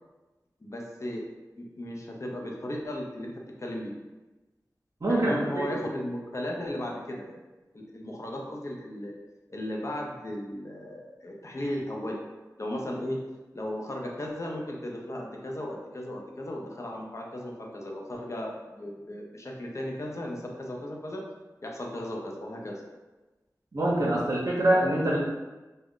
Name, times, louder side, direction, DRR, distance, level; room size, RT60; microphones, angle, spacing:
voice 1, 0.6-1.2 1.6-3.3 3.6-3.9 5.1-7.4 7.7-9.1 9.5-12.2 12.6-13.2 13.5-21.2 21.6-22.8, left 1 dB, 45° left, -1 dB, 0.6 m, -35 dB
voice 2, 23.7-25.2, right 1 dB, 55° right, -6 dB, 0.6 m, -24 dB
2.4 x 2.1 x 3.6 m, 1.2 s
wide cardioid pair, 50°, 7 cm